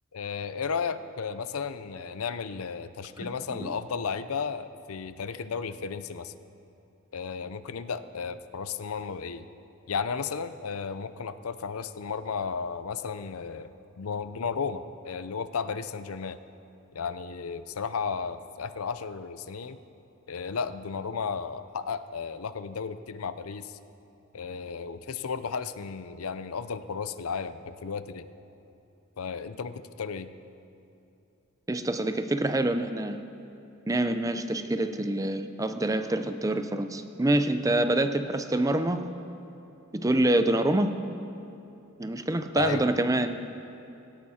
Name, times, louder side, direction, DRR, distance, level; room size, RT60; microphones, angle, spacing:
voice 1, 0.1-6.3 7.1-9.5 9.9-13.7 14.0-16.4 16.9-19.8 20.3-23.7 24.3-28.3 29.2-30.3 42.6-42.8, left 5 dB, 80° left, 12 dB, 0.6 m, -34 dB
voice 2, 3.2-3.7 31.7-33.2 33.9-39.1 39.9-41.0 42.0-43.4, right 1 dB, 15° right, 9 dB, 0.5 m, -26 dB
17.5 x 17.0 x 4.3 m, 2.8 s
head